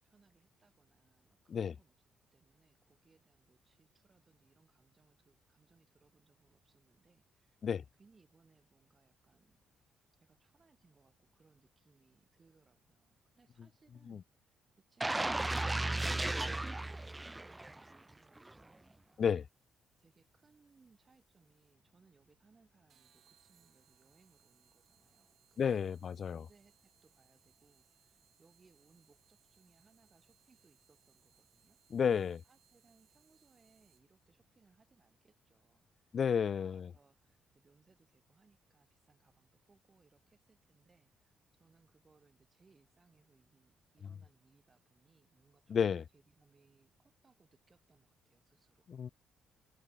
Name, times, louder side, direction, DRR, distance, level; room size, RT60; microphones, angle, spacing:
voice 1, 0.0-1.9 2.3-7.6 8.0-14.6 14.9-19.2 20.0-48.9, right 4 dB, 30° right, 6.8 m, -69 dB
sound 1, 15.0-18.0 18.4-18.5, right 2 dB, 15° right, 0.5 m, -35 dB
sound 2, 22.9-34.3, right 9 dB, 65° right, 3.8 m, -71 dB
voice 2, 25.6-26.4 31.9-32.4 36.1-36.9 45.7-46.0 48.9-49.1, left 7 dB, 50° left, 0.4 m, -31 dB
cardioid pair, 90°, 0 cm